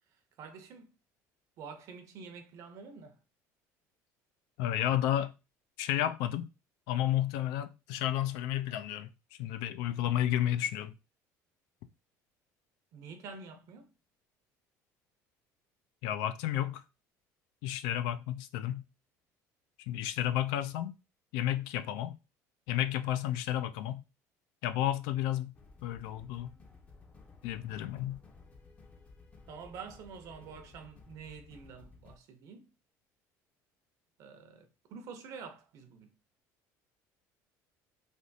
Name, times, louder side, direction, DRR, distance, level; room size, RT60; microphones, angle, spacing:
voice 1, 0.1-0.9 1.6-3.2 12.9-13.9 29.5-32.7 34.2-36.2, right 5 dB, 55° right, 0.7 m, -48 dB
voice 2, 4.6-5.3 5.8-6.5 6.9-9.1 9.4-10.9 16.0-16.8 17.6-18.8 19.9-21.0 21.3-22.2 22.7-24.0 24.6-25.5 25.8-26.5 27.4-28.2, left 12 dB, 85° left, 0.4 m, -31 dB
sound 1, 25.5-32.2, left 4 dB, 20° left, 0.5 m, -56 dB
3.4 x 2.5 x 2.6 m
cardioid pair, 150°, 7 cm